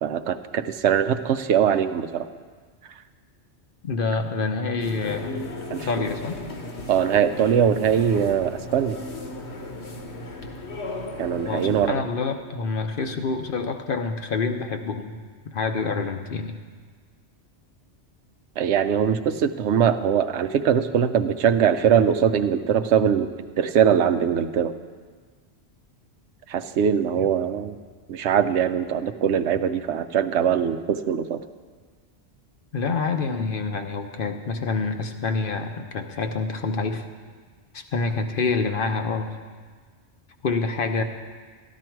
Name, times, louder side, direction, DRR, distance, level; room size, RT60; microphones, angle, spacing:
voice 1, 0.0-2.3 5.7-5.9 6.9-9.0 11.2-12.0 18.6-23.3 23.6-24.7 26.5-27.8 28.1-31.4, right 8 dB, 80° right, 11 dB, 0.9 m, -22 dB
voice 2, 3.8-5.4 5.8-6.4 11.4-15.2 15.4-16.5 27.2-27.3 32.7-37.0 37.7-39.3 40.4-41.0, left 4 dB, 55° left, 6 dB, 0.9 m, -27 dB
sound 1, 4.8-11.9, left 2 dB, 70° left, 1.5 m, -36 dB
12.5 x 12.0 x 4.6 m, 1.6 s
omnidirectional pair, 1.2 m